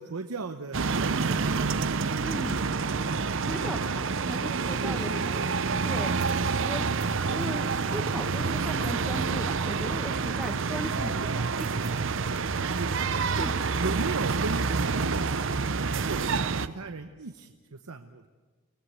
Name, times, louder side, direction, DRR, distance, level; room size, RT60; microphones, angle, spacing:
voice 1, 0.0-1.6 4.7-5.4 10.5-10.7 12.6-12.9 13.3-13.5 13.8-15.4 15.9-18.3, right 3 dB, 85° right, 8 dB, 0.9 m, -37 dB
sound 1, 0.7-16.7, right 4 dB, 55° right, 0.7 m, -28 dB
voice 2, 2.2-2.6 3.4-5.4 5.8-6.1 6.6-6.9 7.3-11.7 13.3-13.5, equal, ahead, 5 dB, 1.6 m, -37 dB
23.0 x 19.0 x 8.1 m, 1.5 s
head